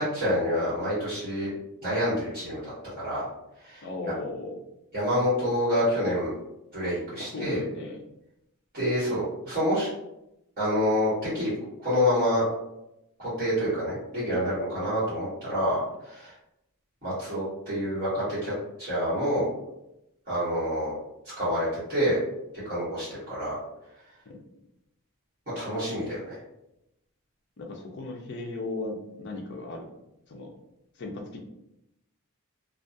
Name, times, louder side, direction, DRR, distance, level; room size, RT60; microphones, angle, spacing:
voice 1, 0.0-1.5 1.8-3.3 3.6-3.8 4.9-6.3 6.7-7.6 8.7-9.9 10.6-11.5 11.8-12.4 13.2-16.3 17.0-18.5 18.8-19.5 20.3-21.0 21.4-22.2 22.6-23.6 25.5-26.4, equal, 40° right, -11 dB, 1.1 m, -27 dB
voice 2, 3.8-4.6 7.2-8.0 14.7-14.8 24.3-24.4 27.6-29.9 30.3-30.5 31.0-31.4, left 2 dB, 50° left, 0 dB, 0.4 m, -36 dB
2.3 x 2.2 x 2.6 m, 0.86 s
head